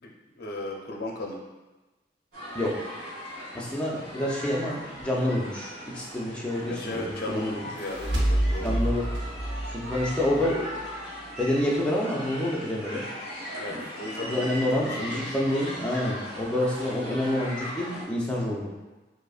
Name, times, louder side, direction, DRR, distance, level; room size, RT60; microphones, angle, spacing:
voice 1, 0.0-1.4 6.7-8.8 13.6-15.5, left 1 dB, 60° left, -1 dB, 0.5 m, -36 dB
sound 1, 2.3-18.0, equal, 55° right, 1.2 m, -39 dB
voice 2, 3.5-7.6 8.6-9.1 9.7-10.7 11.4-13.0 14.2-18.7, left 1 dB, 5° left, -5 dB, 0.5 m, -28 dB
sound 2, 7.5-10.9, right 1 dB, 75° right, 0.8 m, -28 dB
5.1 x 2.1 x 2.4 m, 1.1 s
head